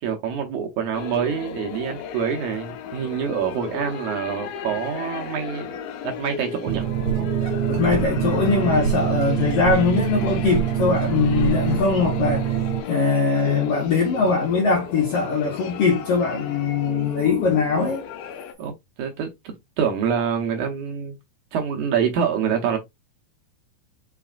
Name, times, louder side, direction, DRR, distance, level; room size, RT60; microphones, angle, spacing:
voice 1, 0.0-5.8 6.0-7.3 18.6-21.2 21.5-22.8, right 7 dB, 70° right, 1.9 m, -26 dB
sound 1, 0.9-18.5, left 7 dB, 85° left, 2.6 m, -35 dB
sound 2, 6.7-12.8, right 11 dB, 90° right, 2.4 m, -24 dB
voice 2, 7.7-12.6 12.9-18.0, left 4 dB, 65° left, 1.5 m, -21 dB
5.7 x 4.0 x 2.3 m
omnidirectional pair, 4.1 m